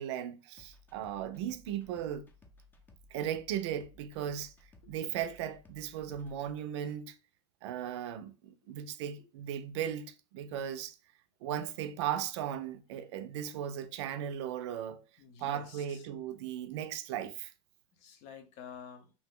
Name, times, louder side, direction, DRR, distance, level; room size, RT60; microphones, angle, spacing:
voice 1, 0.0-2.2 3.1-4.5 4.9-7.1 7.6-11.0 11.4-15.0 15.4-17.5, right 10 dB, 75° right, 0.4 m, -37 dB
sound 1, 0.5-7.0, left 2 dB, 15° left, 0.6 m, -60 dB
voice 2, 15.2-16.3 17.9-19.1, left 7 dB, 55° left, 0.7 m, -50 dB
2.7 x 2.1 x 3.6 m
supercardioid pair, 120°, 14 cm